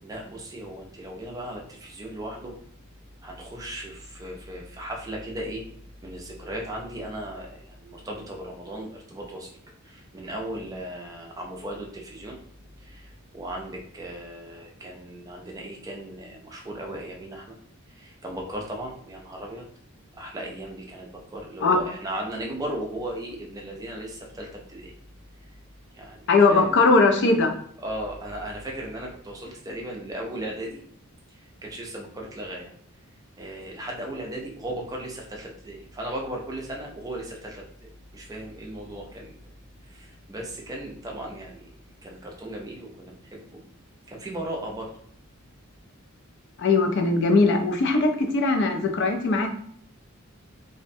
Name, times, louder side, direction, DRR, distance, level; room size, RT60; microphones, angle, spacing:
voice 1, 0.0-2.6 3.2-5.7 6.0-9.6 9.8-12.4 12.8-17.6 17.9-19.6 20.1-24.9 25.9-26.2 26.5-26.7 27.8-30.8 31.3-32.7 33.4-39.4 39.9-41.7 42.0-43.6 44.1-44.9, right 1 dB, 15° right, -1 dB, 0.4 m, -36 dB
voice 2, 26.3-27.5 46.6-49.5, left 3 dB, 55° left, 4 dB, 0.4 m, -20 dB
2.5 x 2.1 x 2.5 m, 0.65 s
head